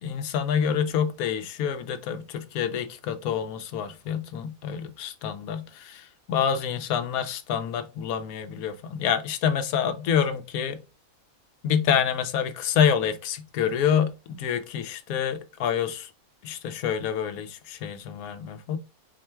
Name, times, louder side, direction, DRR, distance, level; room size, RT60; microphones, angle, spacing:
voice 1, 0.0-10.8 11.6-16.1 16.4-18.8, left 8 dB, 90° left, 1.1 m, -27 dB
4.4 x 2.2 x 4.3 m
omnidirectional pair, 1.5 m